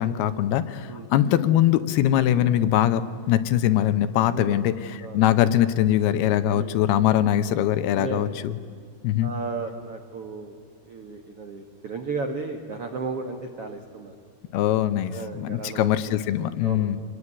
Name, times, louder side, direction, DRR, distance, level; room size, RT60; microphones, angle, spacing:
voice 1, 0.0-8.6 9.0-9.3 14.5-17.0, left 12 dB, 75° left, 12 dB, 2.7 m, -22 dB
voice 2, 7.9-8.4 9.2-10.6 10.8-14.1 15.1-16.2 16.6-16.9, right 4 dB, 65° right, 5 dB, 1.4 m, -34 dB
26.5 x 20.5 x 9.8 m, 2.2 s
omnidirectional pair, 4.8 m